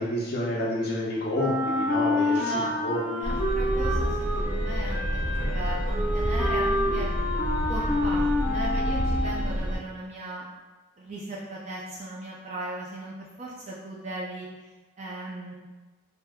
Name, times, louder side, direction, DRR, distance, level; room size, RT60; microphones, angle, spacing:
voice 1, 0.0-3.3, left 1 dB, 50° left, -4 dB, 0.5 m, -29 dB
Wind instrument woodwind instrument, 1.3-9.6, left 1 dB, 10° right, 1.1 m, -28 dB
voice 2, 2.1-2.8 3.1-7.1 7.7-10.5 11.0-14.5 15.0-15.5, right 1 dB, 35° right, -4 dB, 0.4 m, -37 dB
sound 1, 3.2-9.8, equal, 80° right, 0.7 m, -28 dB
3.4 x 2.7 x 2.2 m, 1.2 s
head